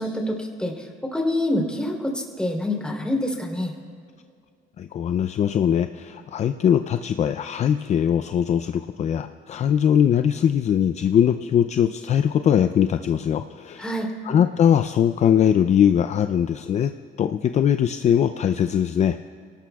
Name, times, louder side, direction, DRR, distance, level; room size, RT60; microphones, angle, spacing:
voice 1, 0.0-3.7 13.8-14.1, left 1 dB, 5° left, -1 dB, 3.4 m, -26 dB
voice 2, 4.8-13.9 14.2-16.9 17.2-19.2, left 9 dB, 45° left, 9 dB, 0.5 m, -21 dB
29.5 x 18.5 x 2.4 m, 2.3 s
cardioid pair, 110°, 17 cm